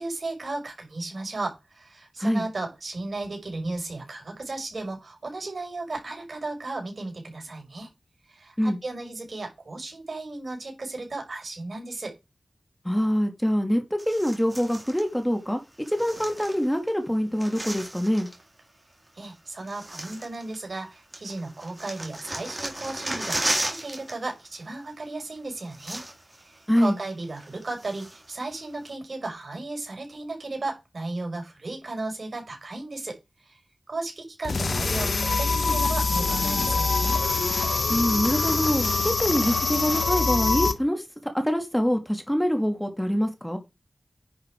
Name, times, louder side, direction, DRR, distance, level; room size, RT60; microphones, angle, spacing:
voice 1, 0.0-7.9 8.3-12.2 19.2-26.0 26.4-33.2 33.4-33.6 33.9-37.2, right 2 dB, 70° right, 6.0 m, -35 dB
voice 2, 12.8-15.6 15.9-18.3 26.7-27.0 37.9-41.0 41.3-43.6, equal, 5° left, 2.7 m, -25 dB
sound 1, 14.0-15.1 15.8-16.9 17.2-18.4 19.2-19.3 19.7-20.8 21.1-24.1 24.4-24.6 25.4-25.5 25.7-26.4 26.8-26.9 27.4-28.3 28.9-29.0, right 1 dB, 25° right, 4.1 m, -34 dB
sound 2, 34.4-40.7, left 3 dB, 75° left, 1.5 m, -24 dB
10.5 x 6.5 x 4.9 m
cardioid pair, 45°, 0 cm